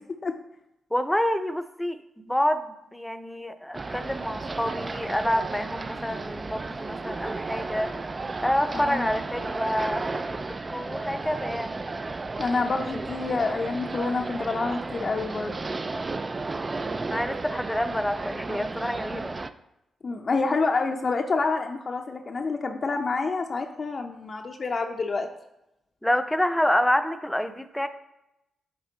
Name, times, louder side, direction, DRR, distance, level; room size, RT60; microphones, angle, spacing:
voice 1, 0.9-2.0 2.3-7.9 8.4-10.4 10.7-11.7 17.1-19.4 26.0-27.9, equal, 5° left, 10 dB, 0.6 m, -27 dB
sound 1, 3.7-19.5, right 3 dB, 35° right, 0.4 m, -33 dB
voice 2, 8.7-9.2 12.4-15.6 20.0-25.3, left 3 dB, 50° left, 2 dB, 0.6 m, -28 dB
8.8 x 3.5 x 4.0 m, 0.90 s
supercardioid pair, 50°, 0 cm